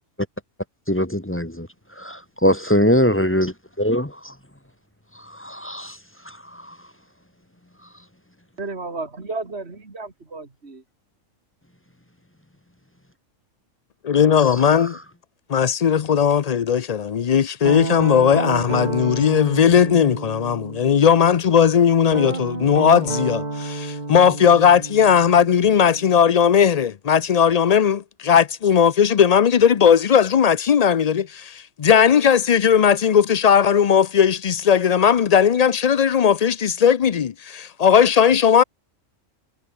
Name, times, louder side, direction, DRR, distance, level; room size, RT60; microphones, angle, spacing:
voice 1, 0.9-1.7 2.0-4.3 5.1-6.0 6.2-6.8 14.7-14.9, equal, 10° left, 1.2 m, -22 dB
voice 2, 8.6-10.8, right 3 dB, 55° right, 3.0 m, -33 dB
voice 3, 14.0-15.0 15.5-38.6, left 8 dB, 55° left, 0.4 m, -17 dB
Guitar, 17.6-21.4 22.1-26.8, right 2 dB, 35° right, 2.5 m, -30 dB
omnidirectional pair, 1.4 m